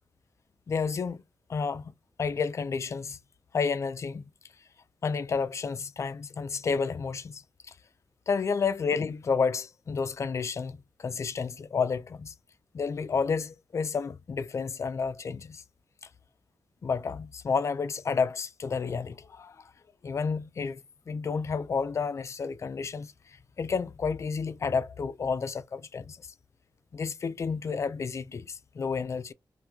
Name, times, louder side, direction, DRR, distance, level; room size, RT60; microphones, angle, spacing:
voice 1, 0.7-1.2 1.5-1.9 2.2-3.2 3.5-4.3 5.0-7.7 8.3-12.3 12.7-15.6 16.8-19.6 20.0-20.8 21.1-26.2 26.9-29.3, left 5 dB, 45° left, 0.4 m, -31 dB
2.9 x 2.5 x 3.5 m
wide cardioid pair, 135°, 7 cm